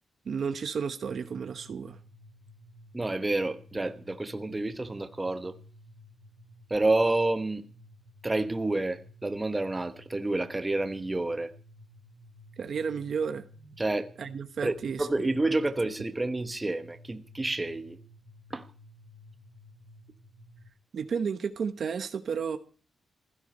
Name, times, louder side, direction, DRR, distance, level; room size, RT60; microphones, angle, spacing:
voice 1, 0.2-2.0 12.6-13.5 14.2-15.3 20.9-22.6, right 6 dB, 55° right, 1.0 m, -32 dB
sound 1, 1.1-20.7, left 1 dB, 85° left, 7.2 m, -54 dB
voice 2, 2.9-5.6 6.7-7.6 8.2-11.5 13.8-14.1 14.6-18.0 18.5-18.6, right 2 dB, 15° right, 1.1 m, -29 dB
16.0 x 12.5 x 5.4 m
wide cardioid pair, 135°, 0 cm